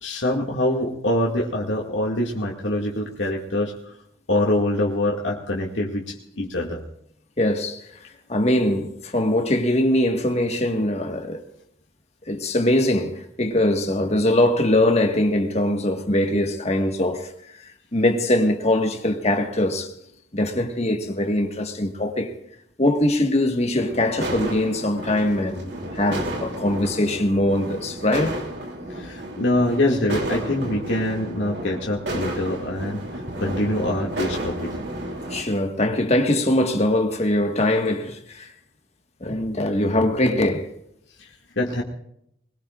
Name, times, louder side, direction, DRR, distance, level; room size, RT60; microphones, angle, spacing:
voice 1, 0.0-3.7 4.3-6.8 28.9-33.0 33.4-34.8 41.2-41.3 41.6-41.8, left 1 dB, 85° left, 2.2 m, -24 dB
voice 2, 7.4-7.8 8.3-11.4 12.3-17.3 17.9-19.9 20.3-22.3 22.8-28.4 35.3-38.5 39.2-40.7, left 1 dB, 35° left, 1.6 m, -22 dB
sound 1, 23.8-35.4, right 1 dB, 65° right, 3.0 m, -32 dB
21.5 x 20.5 x 2.5 m
head